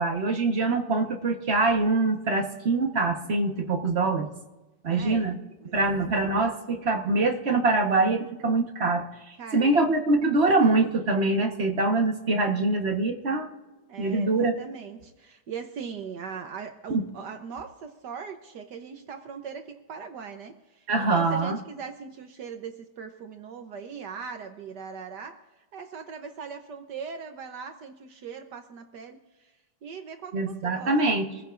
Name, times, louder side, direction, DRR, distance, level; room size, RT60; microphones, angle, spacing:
voice 1, 0.0-4.3 4.8-5.4 5.7-9.0 9.5-13.5 14.0-14.5 16.9-17.0 20.9-21.6 30.3-31.3, right 3 dB, 35° right, 3 dB, 1.3 m, -24 dB
voice 2, 4.9-5.3 5.6-6.3 9.4-9.8 13.9-25.4 25.7-29.5 29.8-31.0, right 6 dB, 65° right, 6 dB, 1.4 m, -40 dB
25.5 x 15.0 x 2.5 m, 1.1 s
omnidirectional pair, 2.1 m